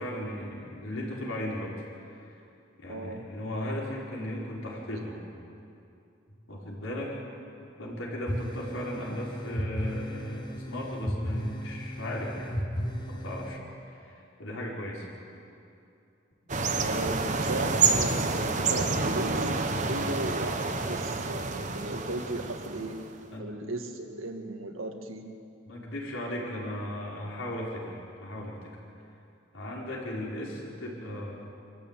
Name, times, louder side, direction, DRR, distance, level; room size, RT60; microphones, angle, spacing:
voice 1, 0.0-1.8 2.1-2.4 2.8-5.2 6.5-7.2 7.8-12.6 13.1-13.6 13.9-15.1 23.3-23.5 25.7-28.8 29.5-31.3, left 1 dB, 85° left, -3 dB, 5.3 m, -36 dB
voice 2, 2.9-3.2 16.8-23.0 23.4-25.3, right 1 dB, 85° right, 4 dB, 2.0 m, -36 dB
sound 1, 8.3-13.6, equal, 20° left, 1.3 m, -35 dB
sound 2, 16.5-23.1, right 4 dB, 35° right, 1.2 m, -28 dB
25.5 x 14.0 x 9.1 m, 2.6 s
head